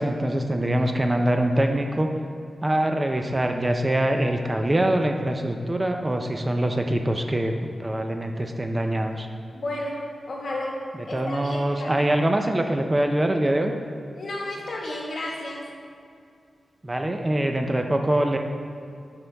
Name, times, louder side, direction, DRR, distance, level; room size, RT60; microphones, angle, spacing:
voice 1, 0.0-2.1 2.6-7.5 7.8-9.3 11.1-13.7 16.8-18.4, right 1 dB, 20° right, 4 dB, 0.5 m, -24 dB
voice 2, 9.5-10.0 10.3-11.9 14.1-15.6, left 1 dB, 60° left, -2 dB, 1.5 m, -32 dB
9.2 x 6.0 x 3.4 m, 2.4 s
wide cardioid pair, 110°, 0 cm